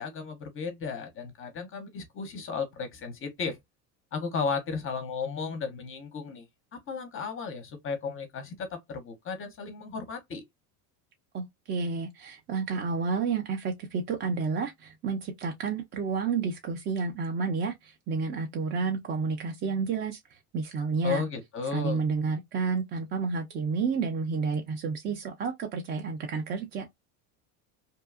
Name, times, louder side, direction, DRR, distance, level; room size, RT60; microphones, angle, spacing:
voice 1, 0.0-3.6 4.1-6.5 6.7-10.4 21.0-22.0, left 5 dB, 30° left, 0.6 m, -34 dB
voice 2, 11.3-21.2 21.7-26.9, right 5 dB, 25° right, 0.4 m, -30 dB
2.7 x 2.3 x 2.3 m
supercardioid pair, 120°, 43 cm